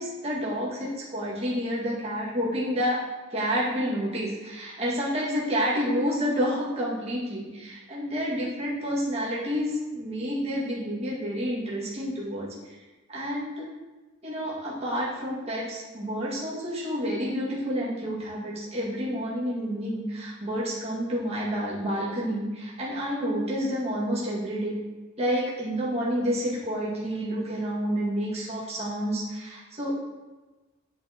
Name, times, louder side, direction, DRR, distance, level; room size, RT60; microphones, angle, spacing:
voice 1, 0.0-3.0 3.3-12.8 13.1-13.7 14.2-24.8 25.2-29.9, equal, 30° right, -7 dB, 1.8 m, -29 dB
8.4 x 6.6 x 2.9 m, 1.2 s
head